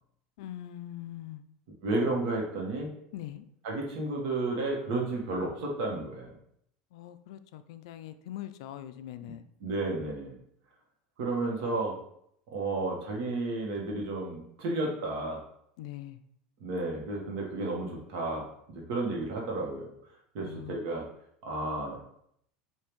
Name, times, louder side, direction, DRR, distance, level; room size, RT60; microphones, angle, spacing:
voice 1, 0.4-1.4 3.1-3.4 6.9-9.4 15.8-16.2 20.4-20.8, left 12 dB, 80° left, 11 dB, 0.3 m, -42 dB
voice 2, 1.8-2.9 3.6-6.3 9.2-9.3 9.6-10.4 11.2-11.9 12.5-15.4 16.6-19.9 20.3-21.0 21.4-22.0, right 2 dB, 65° right, -1 dB, 1.3 m, -32 dB
5.2 x 2.7 x 3.0 m, 0.71 s
supercardioid pair, 145°, 3 cm